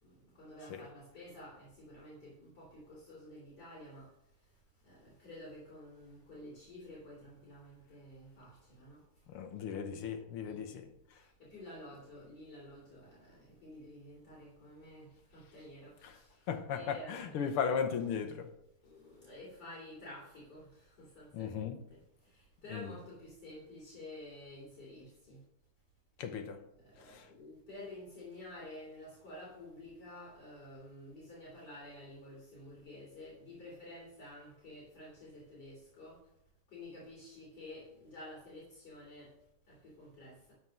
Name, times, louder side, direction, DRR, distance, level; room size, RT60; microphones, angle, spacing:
voice 1, 0.0-4.1 4.8-9.0 10.4-10.6 11.2-16.3 16.7-17.5 18.8-22.0 22.2-25.4 26.8-36.2 36.7-39.3 39.7-40.5, left 1 dB, 45° left, 3.5 m, -51 dB
voice 2, 9.3-10.9 16.5-18.5 21.3-21.8 22.7-22.9 26.2-26.6 27.1-27.2, left 7 dB, 80° left, 1.9 m, -36 dB
12.5 x 4.7 x 6.3 m
omnidirectional pair, 2.4 m